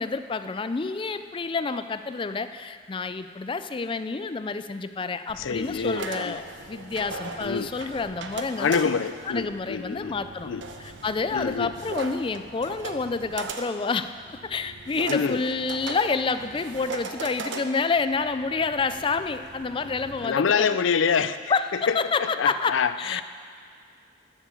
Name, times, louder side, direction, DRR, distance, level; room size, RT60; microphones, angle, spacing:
voice 1, 0.0-10.5 10.8-20.8 21.2-23.2, left 4 dB, 25° left, 11 dB, 0.4 m, -29 dB
sound 1, 5.3-20.3, right 3 dB, 75° right, 0.8 m, -39 dB
voice 2, 5.4-6.4 7.4-7.7 8.6-10.1 10.4-10.6 11.3-11.7 15.1-15.4 20.2-21.4 22.4-23.2, left 6 dB, 90° left, 13 dB, 0.5 m, -26 dB
12.0 x 7.4 x 6.9 m, 2.2 s
head